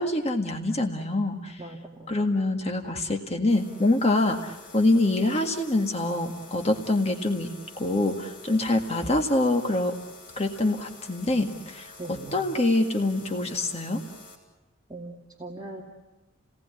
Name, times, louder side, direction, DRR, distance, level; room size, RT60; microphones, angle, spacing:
voice 1, 0.0-1.7 2.1-10.0 10.4-14.0, left 2 dB, 35° left, 4 dB, 1.8 m, -25 dB
voice 2, 1.6-2.1 12.0-12.3 14.9-15.8, right 2 dB, 20° right, 0 dB, 2.5 m, -40 dB
sound 1, 3.5-14.3, left 3 dB, 50° left, 6.1 m, -48 dB
30.0 x 19.0 x 9.6 m, 1.1 s
head